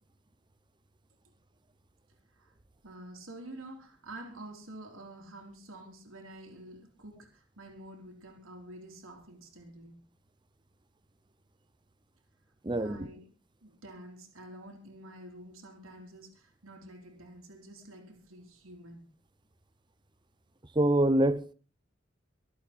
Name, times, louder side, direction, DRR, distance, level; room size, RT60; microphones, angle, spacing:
voice 1, 2.8-10.0 12.8-13.3 13.6-19.0, right 1 dB, 85° right, 3.7 m, -48 dB
voice 2, 12.6-13.1 20.8-21.5, right 1 dB, 20° right, 0.7 m, -25 dB
25.0 x 8.6 x 4.4 m
head